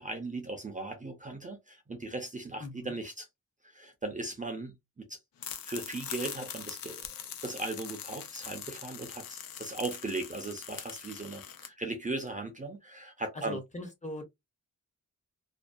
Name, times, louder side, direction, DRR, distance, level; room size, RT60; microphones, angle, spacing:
voice 1, 0.0-3.3 3.7-5.2 5.6-7.0 7.4-13.6, right 2 dB, 25° right, 0.4 m, -38 dB
voice 2, 2.6-2.9 13.3-14.2, left 1 dB, 20° left, 0.6 m, -40 dB
sound 1, 5.4-11.7, left 8 dB, 90° left, 0.6 m, -42 dB
2.6 x 2.2 x 2.2 m
wide cardioid pair, 175°, 33 cm